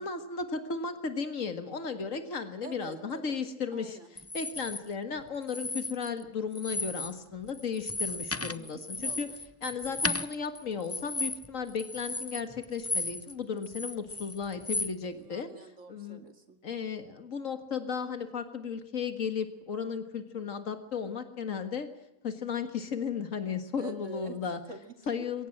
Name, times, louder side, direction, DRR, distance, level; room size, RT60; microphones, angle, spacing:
voice 1, 0.0-4.0 4.3-9.3 9.6-15.5 15.9-16.2 16.6-21.9 22.2-24.6 25.1-25.5, left 5 dB, 90° left, 8 dB, 2.1 m, -35 dB
voice 2, 2.6-3.4 3.7-4.1 8.4-9.4 15.1-16.6 23.7-24.4 24.7-25.3, right 4 dB, 70° right, 6 dB, 2.8 m, -47 dB
sound 1, 4.2-4.8 5.4-6.2 6.5-7.2 7.5-13.3 13.6-14.9, left 2 dB, 15° left, 0.5 m, -35 dB
22.5 x 18.0 x 7.6 m, 0.86 s
omnidirectional pair, 1.3 m